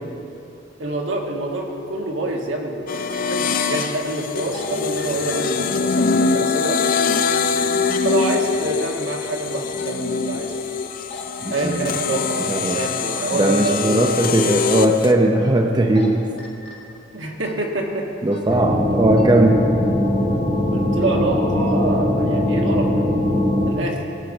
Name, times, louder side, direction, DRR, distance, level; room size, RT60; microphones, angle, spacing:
voice 1, 0.8-6.8 8.0-10.6 11.5-14.1 17.1-18.1 18.5-18.8 19.3-19.5 20.7-23.1 23.6-24.0, right 2 dB, 75° right, 0 dB, 1.6 m, -26 dB
sound 1, 2.9-15.1, left 5 dB, 50° left, 0.5 m, -23 dB
sound 2, 4.3-4.7 5.0-5.3 6.9-7.3 7.6-7.9 8.6-8.8 9.7-10.0 10.8-11.2 11.5-11.9 14.2-14.3 15.7-16.1 16.4-16.8 17.4-17.6 18.3-18.5 18.9-19.2, left 3 dB, 65° left, 1.9 m, -38 dB
voice 2, 11.4-11.9 12.5-12.8 13.3-16.2 18.2-19.6, right 1 dB, 25° right, 3 dB, 0.6 m, -18 dB
sound 3, 18.5-23.7, left 1 dB, 85° left, 2.6 m, -20 dB
18.5 x 6.3 x 5.4 m, 2.8 s
head